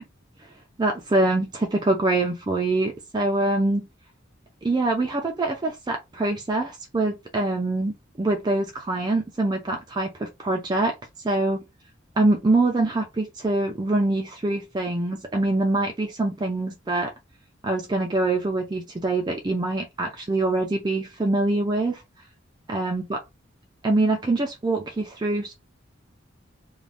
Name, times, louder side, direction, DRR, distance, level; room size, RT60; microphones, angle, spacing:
voice 1, 0.8-3.9 4.6-10.9 11.2-11.6 12.2-17.1 17.6-22.0 22.7-23.2 23.8-25.5, right 2 dB, 20° right, 0.4 m, -24 dB
2.6 x 2.2 x 3.3 m
head